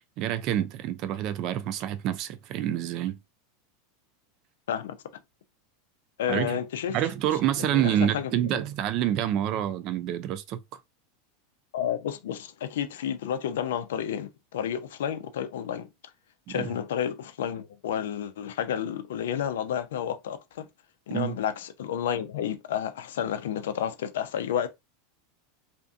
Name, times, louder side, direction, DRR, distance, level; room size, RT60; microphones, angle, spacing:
voice 1, 0.0-3.2 6.3-6.6 6.9-10.6 16.5-16.7 21.1-21.4, right 11 dB, 45° right, 0.3 m, -27 dB
voice 2, 6.2-7.0 7.6-8.6 11.7-15.9 16.5-20.7 21.1-24.7, left 9 dB, 85° left, 0.4 m, -31 dB
2.5 x 2.5 x 2.4 m
supercardioid pair, 145°, 0 cm